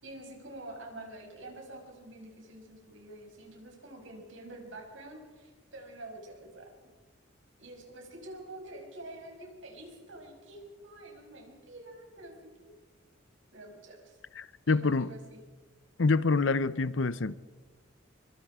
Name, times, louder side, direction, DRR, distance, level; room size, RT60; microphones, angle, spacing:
voice 1, 0.0-6.8 7.6-12.7 13.5-14.2 14.7-15.4, right 1 dB, 80° right, 6.4 m, -47 dB
voice 2, 14.4-15.1 16.0-17.4, left 3 dB, 75° left, 0.8 m, -26 dB
25.0 x 24.5 x 5.0 m
head